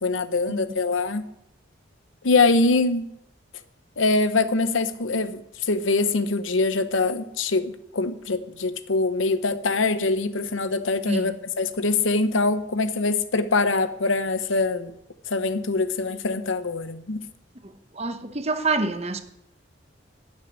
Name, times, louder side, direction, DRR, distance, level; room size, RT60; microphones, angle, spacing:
voice 1, 0.0-1.3 2.2-3.1 4.0-14.9 15.3-17.2, left 3 dB, 80° left, 0.9 m, -23 dB
voice 2, 17.6-19.2, right 3 dB, 30° right, 0.9 m, -27 dB
12.0 x 6.7 x 9.6 m
head